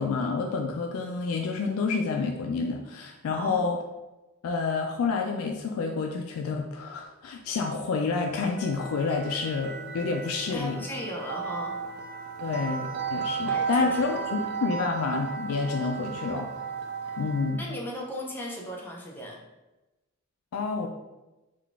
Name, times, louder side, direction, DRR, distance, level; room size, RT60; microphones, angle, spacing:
voice 1, 0.0-3.8 4.4-10.8 12.4-16.5 17.2-17.6 20.5-20.9, left 4 dB, 75° left, 2 dB, 0.3 m, -29 dB
voice 2, 3.3-3.6 10.5-11.8 12.4-12.7 13.5-14.0 17.6-19.4, equal, 10° left, -2 dB, 0.6 m, -36 dB
sound 1, 8.2-17.7, right 6 dB, 50° right, 0.4 m, -34 dB
3.7 x 2.3 x 3.4 m, 1.1 s
head